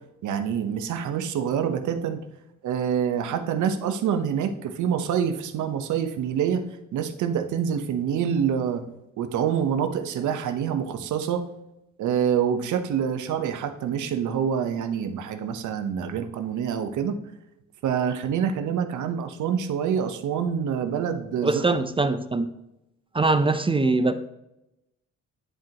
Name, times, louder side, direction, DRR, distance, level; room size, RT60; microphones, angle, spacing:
voice 1, 0.2-2.2 2.6-6.6 6.9-8.8 9.2-11.4 12.0-17.2 17.8-21.6, right 8 dB, 75° right, 0.9 m, -26 dB
voice 2, 21.4-22.5 23.1-24.1, right 3 dB, 20° right, 0.5 m, -22 dB
10.0 x 4.6 x 2.9 m
cardioid pair, 90°, 30 cm